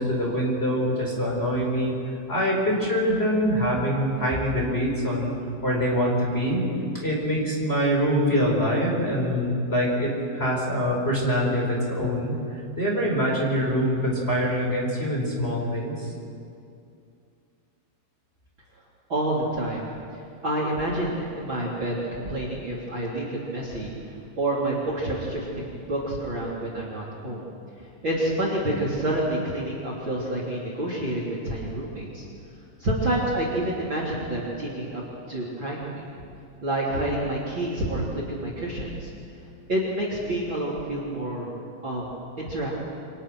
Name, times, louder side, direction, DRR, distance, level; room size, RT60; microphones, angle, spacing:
voice 1, 0.0-1.9 2.3-5.4 5.6-6.7 7.0-16.1, equal, 15° left, -3 dB, 5.1 m, -24 dB
voice 2, 19.1-19.9 20.4-23.9 24.4-27.5 28.0-32.3 32.8-36.1 36.6-39.1 39.7-41.5 41.8-42.1 42.4-42.7, right 1 dB, 30° right, -5 dB, 3.9 m, -28 dB
29.0 x 26.0 x 6.4 m, 2.5 s
omnidirectional pair, 4.5 m